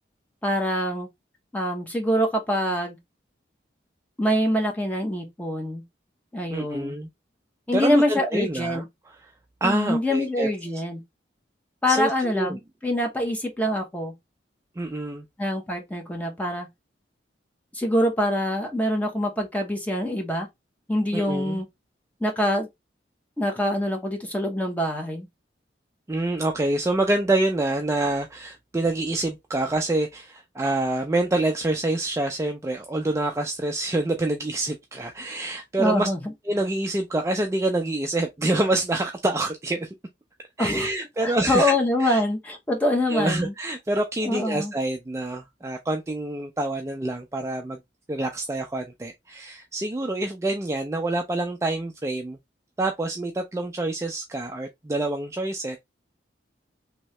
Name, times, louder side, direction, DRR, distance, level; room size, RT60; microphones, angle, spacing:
voice 1, 0.4-1.1 1.5-3.0 4.2-5.8 6.3-7.0 7.7-8.8 9.6-11.0 11.8-14.1 15.4-16.7 17.7-20.5 20.9-21.7 22.2-22.7 23.4-25.3 35.8-36.2 40.6-40.9 41.2-43.5 44.2-44.7, left 1 dB, 10° left, 0.8 m, -25 dB
voice 2, 6.5-7.1 7.7-8.8 9.6-10.5 11.9-12.6 14.8-15.2 21.1-21.6 26.1-36.1 36.5-39.9 40.6-41.7 42.0-42.2 43.1-47.8 48.1-52.4 52.8-55.8, right 2 dB, 15° right, 0.3 m, -26 dB
3.1 x 2.8 x 3.0 m
head